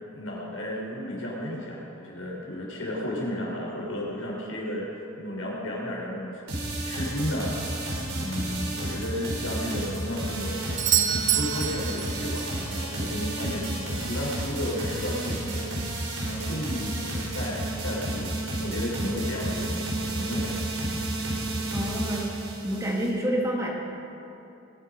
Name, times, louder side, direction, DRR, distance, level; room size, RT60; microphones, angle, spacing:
voice 1, 0.1-4.9 5.2-7.5 8.1-10.6 10.9-19.8 20.0-21.0, left 1 dB, 90° left, -3 dB, 4.7 m, -33 dB
sound 1, 6.5-23.1, right 1 dB, 90° right, 4.0 m, -31 dB
Doorbell, 10.8-12.6 16.7-16.8, right 11 dB, 35° right, 0.6 m, -26 dB
voice 2, 21.7-22.3 22.6-23.7, equal, 15° right, -3 dB, 2.3 m, -28 dB
21.0 x 11.5 x 5.4 m, 2.8 s
head